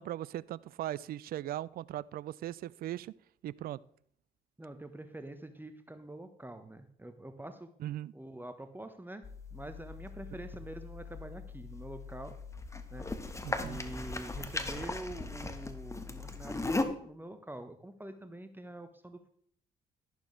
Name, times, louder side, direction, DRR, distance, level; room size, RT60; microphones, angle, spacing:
voice 1, 0.0-3.1 3.4-3.8 7.8-8.1 13.4-13.8, right 13 dB, 55° right, 21 dB, 0.4 m, -39 dB
voice 2, 4.6-7.7 8.1-12.3 12.9-13.0 13.6-19.3, right 1 dB, 10° right, 8 dB, 1.2 m, -46 dB
sound 1, 9.2-16.8, left 2 dB, 15° left, 1.4 m, -38 dB
12.0 x 11.5 x 3.3 m, 0.63 s
hypercardioid pair, 50°, 19 cm